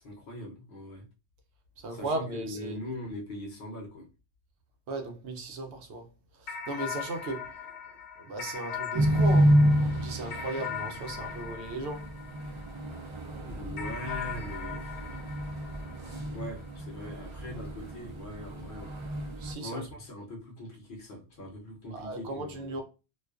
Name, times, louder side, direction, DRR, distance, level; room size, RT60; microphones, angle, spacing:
voice 1, 0.0-1.1 1.9-4.1 13.4-15.1 16.3-19.0 19.6-22.8, left 1 dB, 55° left, 0.8 m, -41 dB
voice 2, 1.8-2.8 4.9-6.1 6.4-7.5 8.2-9.6 9.9-12.1 19.4-19.8 21.9-22.8, right 2 dB, 85° right, 0.9 m, -36 dB
sound 1, 6.5-13.1 13.8-16.5, left 7 dB, 85° left, 0.9 m, -40 dB
sound 2, 8.9-19.5, equal, 50° right, 0.3 m, -29 dB
2.4 x 2.3 x 2.3 m
omnidirectional pair, 1.1 m